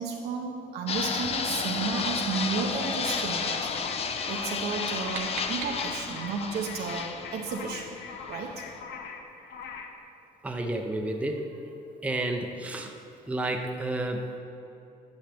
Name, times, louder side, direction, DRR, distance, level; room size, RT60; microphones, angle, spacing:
voice 1, 0.0-3.7 4.3-7.9 8.3-8.6, right 5 dB, 70° right, 1 dB, 0.7 m, -33 dB
Fixed-wing aircraft airplane, 0.9-8.8, left 5 dB, 35° left, 0.5 m, -32 dB
sound 1, 2.3-10.0, left 5 dB, 80° left, 0.7 m, -42 dB
sound 2, 4.6-6.3, right 5 dB, 85° right, 1.0 m, -41 dB
voice 2, 10.4-11.4 12.0-12.9 13.3-14.4, right 1 dB, 10° right, 3 dB, 0.6 m, -30 dB
10.5 x 6.3 x 3.4 m, 2.9 s
cardioid pair, 110°, 17 cm